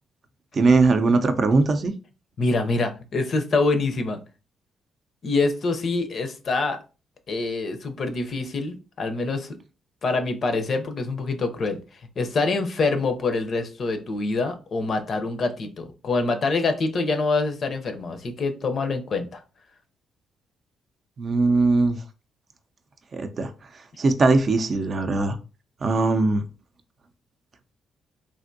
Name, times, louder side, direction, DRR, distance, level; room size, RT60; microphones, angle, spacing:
voice 1, 0.5-1.9 21.2-22.0 23.1-23.5 24.0-25.4 25.8-26.4, right 3 dB, 45° right, 0.5 m, -20 dB
voice 2, 2.4-4.2 5.2-6.8 7.3-9.5 10.0-11.8 12.2-19.4, left 3 dB, 50° left, 0.6 m, -25 dB
3.4 x 2.5 x 2.6 m
cardioid pair, 90°, 0 cm